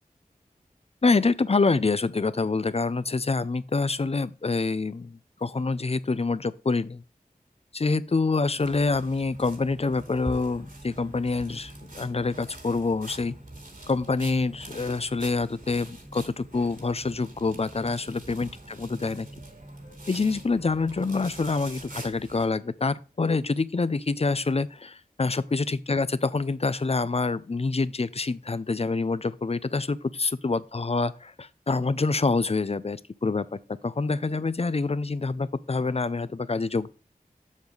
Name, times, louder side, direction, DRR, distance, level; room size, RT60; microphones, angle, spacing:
voice 1, 1.0-7.0 7.7-13.3 13.9-19.3 20.1-36.9, left 3 dB, 40° left, 0.5 m, -26 dB
sound 1, 8.6-22.5, right 1 dB, 65° right, 2.5 m, -44 dB
7.3 x 6.8 x 3.9 m
wide cardioid pair, 55°, 15 cm